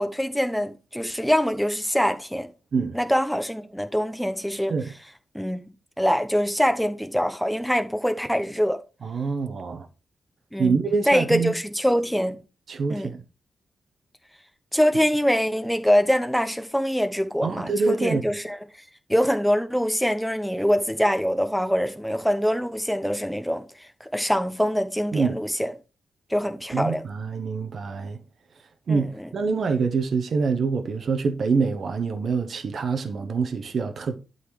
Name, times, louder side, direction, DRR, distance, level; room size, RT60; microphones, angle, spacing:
voice 1, 0.0-2.5 2.9-4.8 5.3-5.7 6.0-8.8 10.5-10.7 11.1-12.4 12.9-13.1 14.7-18.6 19.1-23.6 24.0-25.7 26.3-27.0 28.9-29.3, equal, ahead, 0.9 m, -24 dB
voice 2, 9.0-9.9 10.6-11.5 12.7-13.2 17.4-18.2 25.1-25.4 26.7-28.2 28.9-34.2, right 5 dB, 45° right, 0.9 m, -25 dB
11.5 x 4.1 x 4.8 m
wide cardioid pair, 165°, 0 cm